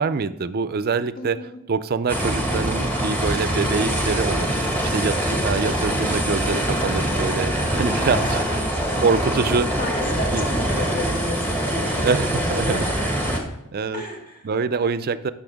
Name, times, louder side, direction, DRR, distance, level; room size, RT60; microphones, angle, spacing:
voice 1, 0.0-1.4 1.7-8.6 9.0-9.7 10.3-10.5 12.0-12.8 13.7-14.0 14.4-15.3, right 5 dB, 45° right, 14 dB, 0.4 m, -25 dB
voice 2, 1.2-1.6 7.9-12.9 13.9-14.5, left 1 dB, 45° left, 0 dB, 2.0 m, -33 dB
sound 1, 2.1-13.4, right 1 dB, 10° left, 1.6 m, -24 dB
10.0 x 6.7 x 3.5 m, 0.85 s
head